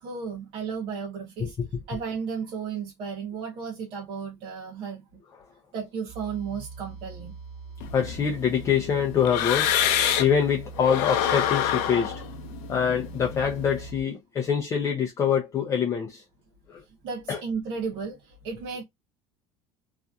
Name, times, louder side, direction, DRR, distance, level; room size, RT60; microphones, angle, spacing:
voice 1, 0.0-1.6 1.9-5.2 5.7-7.4 17.0-18.8, right 6 dB, 45° right, 0.8 m, -34 dB
voice 2, 1.4-2.0 7.9-9.7 10.2-12.2 12.7-16.2 16.7-16.8 17.3-17.4, left 7 dB, 25° left, 0.5 m, -25 dB
sound 1, 6.1-14.0, right 5 dB, ahead, 1.2 m, -42 dB
sound 2, 7.8-10.4 10.8-13.8, left 10 dB, 75° left, 0.6 m, -27 dB
2.7 x 2.4 x 2.3 m
cardioid pair, 165°, 12 cm